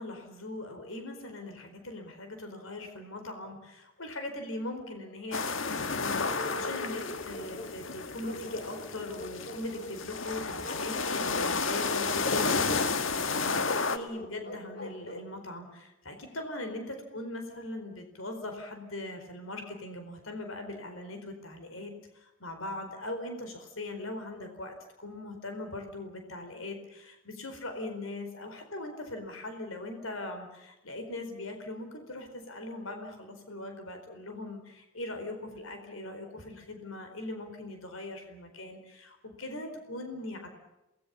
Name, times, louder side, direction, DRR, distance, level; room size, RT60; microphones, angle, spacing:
voice 1, 0.0-40.5, left 2 dB, 85° left, 5 dB, 4.5 m, -40 dB
sound 1, 5.3-14.0, left 4 dB, 70° left, 1.7 m, -31 dB
Bark, 6.2-7.8 8.2-10.0 10.6-11.6 11.9-12.9 13.6-15.3, left 1 dB, 50° left, 3.7 m, -42 dB
29.0 x 19.5 x 7.1 m, 0.95 s
head